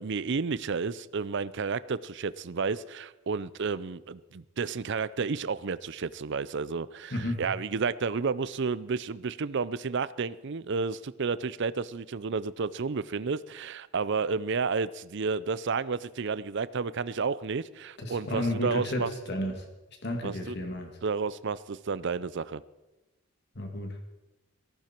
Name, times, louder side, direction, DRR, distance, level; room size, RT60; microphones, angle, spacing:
voice 1, 0.0-19.1 20.2-20.6 21.0-22.6, right 5 dB, 50° right, 17 dB, 0.5 m, -31 dB
voice 2, 7.1-7.4 18.0-19.5 20.0-20.9 23.6-23.9, left 1 dB, 50° left, 3 dB, 2.3 m, -32 dB
18.5 x 15.0 x 4.5 m, 1.0 s
head